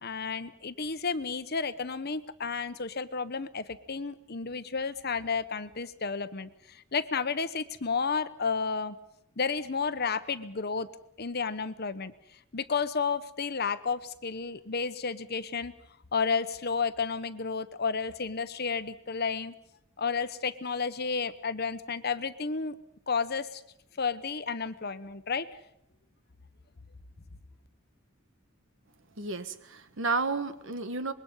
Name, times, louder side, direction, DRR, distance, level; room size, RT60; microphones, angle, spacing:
voice 1, 0.0-6.5 6.9-8.9 9.4-10.9 11.2-12.1 12.5-15.7 16.1-19.5 20.0-22.7 23.1-23.6 24.0-25.5, left 5 dB, 50° left, 12 dB, 1.1 m, -31 dB
voice 2, 29.2-31.1, right 4 dB, 65° right, 11 dB, 1.5 m, -32 dB
25.5 x 22.0 x 5.6 m, 0.79 s
head